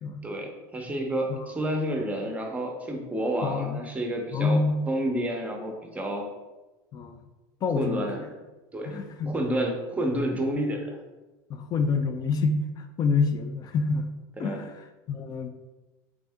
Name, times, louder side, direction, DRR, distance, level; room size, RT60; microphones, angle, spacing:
voice 1, 0.2-6.3 7.8-8.3 8.7-8.9 9.3-11.0 14.4-14.6, right 1 dB, 15° right, 1 dB, 0.7 m, -30 dB
voice 2, 3.4-3.8 4.3-4.9 6.9-7.2 7.6-8.0 8.8-9.4 11.5-14.1 14.4-15.5, left 4 dB, 40° left, 8 dB, 0.4 m, -27 dB
3.5 x 2.6 x 3.4 m, 1.1 s
supercardioid pair, 105°, 11 cm